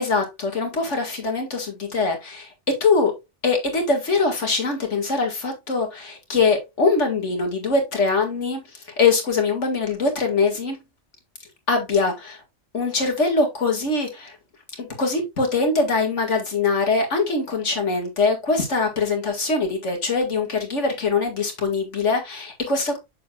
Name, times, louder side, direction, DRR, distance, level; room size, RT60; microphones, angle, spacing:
voice 1, 0.0-3.1 3.4-10.8 11.7-12.4 12.7-14.4 14.8-23.0, left 4 dB, 90° left, 2.5 m, -23 dB
7.8 x 6.8 x 2.3 m
omnidirectional pair, 1.2 m